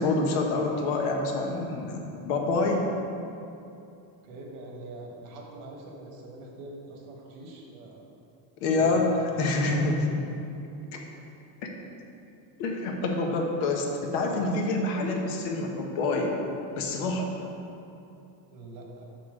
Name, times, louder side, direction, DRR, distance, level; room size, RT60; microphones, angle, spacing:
voice 1, 0.0-2.9 8.6-9.1 9.4-10.0 12.6-16.3 16.8-17.3, left 3 dB, 75° left, 1 dB, 1.3 m, -27 dB
voice 2, 4.2-8.0 8.8-9.0 9.3-9.9 10.2-10.4 18.5-19.0, right 2 dB, 80° right, 0 dB, 1.6 m, -43 dB
5.9 x 5.8 x 5.0 m, 2.7 s
cardioid pair, 120°, 50 cm